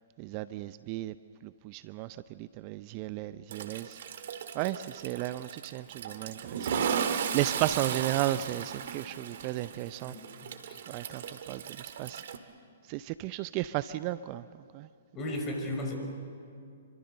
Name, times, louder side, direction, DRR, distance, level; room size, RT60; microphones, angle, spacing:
voice 1, 0.2-1.1 1.4-4.0 4.5-6.8 7.1-10.1 10.9-12.2 12.9-14.4 14.7-14.9, right 15 dB, 35° right, 15 dB, 0.6 m, -34 dB
Toilet flush, 3.5-12.4, right 7 dB, 60° right, 1.8 m, -36 dB
voice 2, 10.1-10.8 15.1-15.9, left 1 dB, 25° left, 3 dB, 6.1 m, -36 dB
27.5 x 24.5 x 6.7 m, 2.4 s
figure-of-eight pair, 120°, 0 cm